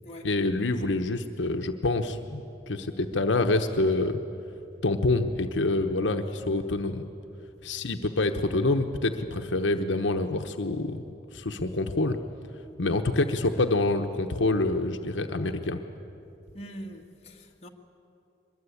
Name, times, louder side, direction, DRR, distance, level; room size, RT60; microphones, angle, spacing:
voice 1, 0.2-4.2 4.8-7.0 7.6-11.0 11.3-12.2 12.8-15.8, left 2 dB, 85° left, 1.0 m, -26 dB
voice 2, 16.5-17.7, equal, 35° left, 1.8 m, -43 dB
23.0 x 21.0 x 8.6 m
head